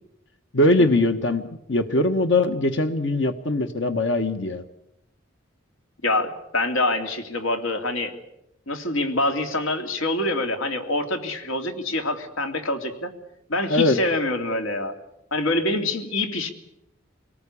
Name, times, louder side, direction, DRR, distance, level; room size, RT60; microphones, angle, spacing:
voice 1, 0.5-4.6 13.7-14.0, left 2 dB, 65° left, 7 dB, 1.2 m, -21 dB
voice 2, 6.0-8.2 8.7-13.1 13.5-14.9 15.3-16.5, left 2 dB, 85° left, 6 dB, 2.8 m, -25 dB
25.5 x 19.0 x 8.5 m, 0.85 s
head